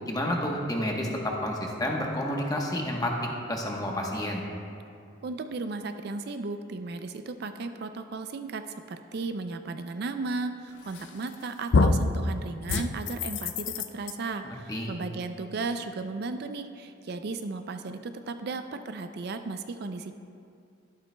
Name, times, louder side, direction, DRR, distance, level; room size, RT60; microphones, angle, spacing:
voice 1, 0.1-3.1 3.5-4.4 14.4-14.9, left 1 dB, 20° left, 0 dB, 1.0 m, -30 dB
voice 2, 5.2-13.7 13.9-20.1, right 3 dB, 55° right, 8 dB, 0.4 m, -35 dB
sound 1, 10.9-11.3 11.7-12.1 12.7-14.1, left 3 dB, 65° left, 0.4 m, -25 dB
12.0 x 11.5 x 2.2 m, 2.5 s
head